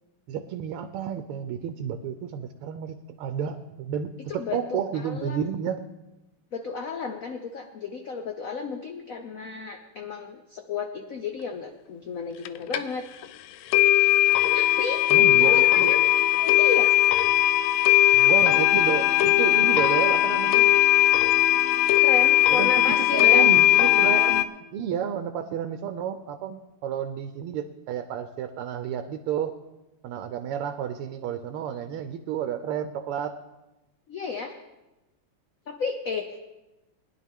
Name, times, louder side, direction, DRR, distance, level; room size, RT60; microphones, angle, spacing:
voice 1, 0.3-5.8 15.1-15.9 18.1-20.7 22.5-29.6 30.0-33.3, right 8 dB, 85° right, 8 dB, 1.6 m, -31 dB
voice 2, 4.3-5.5 6.5-13.1 14.5-15.0 15.4-16.0 16.4-16.9 22.0-23.5 34.1-34.5 35.7-36.4, left 5 dB, 65° left, 5 dB, 0.8 m, -33 dB
sound 1, 12.4-12.5 12.7-12.8 13.2-13.3 13.7-24.4, left 15 dB, 90° left, 1.5 m, -19 dB
20.0 x 10.5 x 3.6 m, 1.0 s
omnidirectional pair, 2.4 m